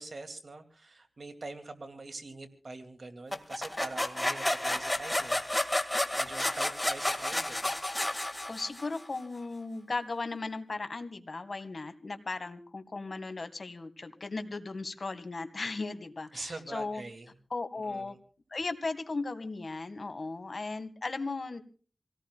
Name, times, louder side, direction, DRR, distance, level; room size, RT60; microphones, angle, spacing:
voice 1, 0.0-5.5 6.2-7.7 16.3-17.3 17.7-18.2, right 3 dB, 75° right, 7 dB, 2.4 m, -44 dB
sound 1, 3.3-9.0, left 1 dB, 20° left, 1.9 m, -31 dB
voice 2, 8.4-17.0 17.5-18.2 18.5-21.6, left 3 dB, 70° left, 9 dB, 1.8 m, -37 dB
27.0 x 18.0 x 2.3 m, 0.42 s
wide cardioid pair, 50°, 0 cm